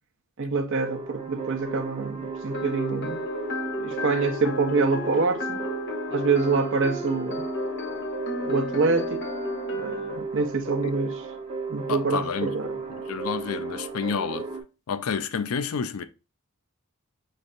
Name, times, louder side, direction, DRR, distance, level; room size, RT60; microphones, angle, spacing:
voice 1, 0.4-3.2 3.8-5.6 6.1-7.5 8.4-9.2 9.7-11.1 11.7-12.7, right 4 dB, 60° right, 0.7 m, -26 dB
sound 1, 0.8-14.6, right 3 dB, 30° right, 0.8 m, -35 dB
sound 2, 2.5-10.2, left 1 dB, 50° left, 0.9 m, -33 dB
voice 2, 11.9-14.5 14.9-16.0, left 6 dB, 70° left, 0.4 m, -30 dB
5.4 x 3.2 x 2.5 m
head